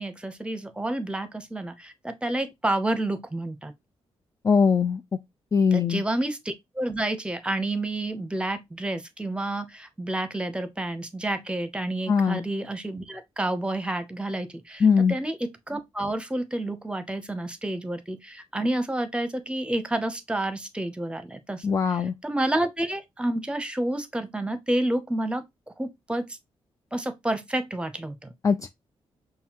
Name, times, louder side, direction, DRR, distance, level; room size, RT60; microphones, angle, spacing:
voice 1, 0.0-3.7 5.7-14.8 15.1-21.6 21.9-25.4 25.8-26.3 26.9-28.3, right 1 dB, 10° right, 0.7 m, -29 dB
voice 2, 4.4-5.0 5.5-6.0 12.1-12.4 14.8-15.2 21.6-22.1 28.4-28.7, left 6 dB, 30° left, 0.4 m, -21 dB
5.4 x 2.3 x 2.9 m
cardioid pair, 75°, 11 cm